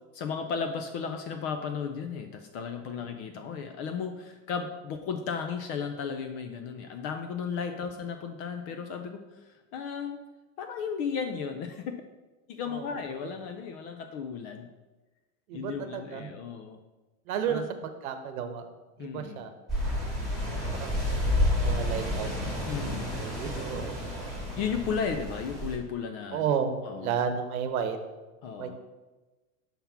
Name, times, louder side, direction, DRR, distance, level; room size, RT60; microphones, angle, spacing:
voice 1, 0.1-10.2 10.6-12.0 12.5-14.7 15.5-16.8 17.5-17.7 19.0-19.4 20.1-20.8 22.6-23.1 24.6-26.4 26.9-27.1 28.4-28.8, left 6 dB, 35° left, 6 dB, 0.4 m, -35 dB
voice 2, 12.7-13.3 15.5-16.3 17.3-18.6 19.0-19.5 20.5-22.8 23.1-24.0 26.3-28.0 28.6-28.7, right 7 dB, 80° right, 8 dB, 1.0 m, -33 dB
sound 1, 19.7-25.8, left 1 dB, ahead, 1.9 m, -30 dB
5.7 x 3.6 x 5.7 m, 1.2 s
supercardioid pair, 130°, 43 cm